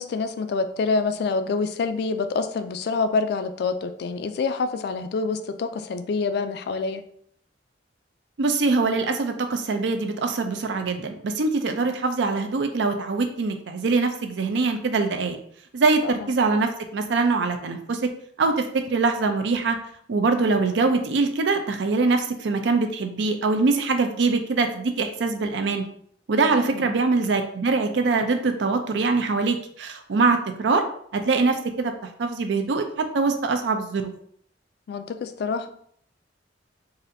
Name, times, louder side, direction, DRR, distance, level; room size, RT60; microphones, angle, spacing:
voice 1, 0.0-7.0 16.0-16.3 26.4-26.9 34.9-35.7, left 4 dB, 65° left, 10 dB, 0.3 m, -27 dB
voice 2, 8.4-15.4 15.7-18.1 18.4-19.8 20.1-25.8 26.3-30.8 31.1-31.9 32.2-34.1, right 3 dB, 80° right, 6 dB, 0.5 m, -23 dB
4.1 x 2.5 x 2.6 m, 0.64 s
head